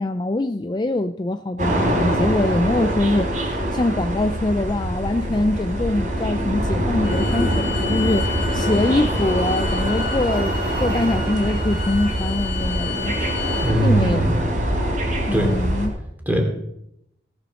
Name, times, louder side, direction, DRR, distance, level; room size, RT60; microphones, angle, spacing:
voice 1, 0.0-13.2 13.8-14.2 15.3-15.9, left 2 dB, 25° left, 9 dB, 0.4 m, -23 dB
sound 1, 1.6-15.9, equal, 45° right, 3.7 m, -24 dB
Bowed string instrument, 7.0-13.8, left 8 dB, 45° left, 2.7 m, -33 dB
voice 2, 13.6-14.4 15.3-15.5 16.3-16.4, right 1 dB, 10° right, 2 dB, 2.8 m, -20 dB
17.5 x 6.9 x 6.4 m, 0.80 s
head